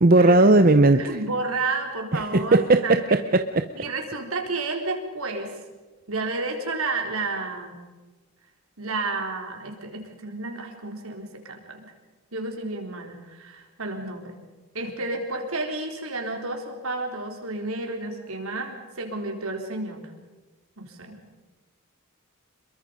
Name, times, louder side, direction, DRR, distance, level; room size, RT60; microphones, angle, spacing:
voice 1, 0.0-1.0 2.3-3.2 3.6-3.7, right 2 dB, 40° right, 8 dB, 0.8 m, -16 dB
voice 2, 1.0-3.0 3.7-5.5 6.1-7.8 8.8-11.9 12.3-14.4 14.7-20.1 20.8-21.2, right 3 dB, 75° right, 2 dB, 4.0 m, -31 dB
27.5 x 22.5 x 5.3 m, 1.2 s
head